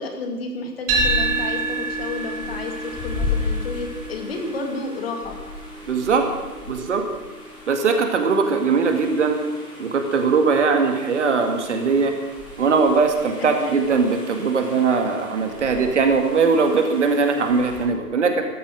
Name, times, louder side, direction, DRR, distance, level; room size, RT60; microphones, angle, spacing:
voice 1, 0.0-5.4 13.4-13.9, left 3 dB, 35° left, 4 dB, 2.4 m, -31 dB
sound 1, 0.9-17.8, left 3 dB, 10° left, 4.3 m, -35 dB
sound 2, 0.9-9.1, right 3 dB, 20° right, 1.9 m, -29 dB
voice 2, 5.9-6.3 6.7-7.0 7.7-9.4 9.8-12.1 12.6-18.5, right 4 dB, 45° right, 5 dB, 2.2 m, -20 dB
15.0 x 13.5 x 6.6 m, 1.2 s
figure-of-eight pair, 145°, 49 cm